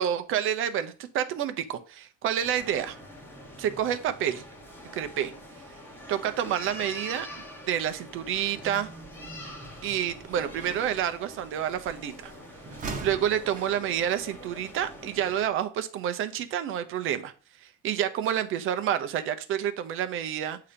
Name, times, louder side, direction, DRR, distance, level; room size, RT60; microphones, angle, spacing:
voice 1, 0.0-3.0 3.6-4.4 4.9-5.3 6.1-7.3 7.7-8.9 9.8-12.3 13.0-17.3 17.6-20.6, right 10 dB, 45° right, 10 dB, 0.7 m, -29 dB
sound 1, 2.4-15.5, equal, 5° left, 1.0 m, -45 dB
sound 2, 8.3-15.6, right 4 dB, 25° right, 1.0 m, -44 dB
8.3 x 2.9 x 5.0 m, 0.39 s
cardioid pair, 165°, 30 cm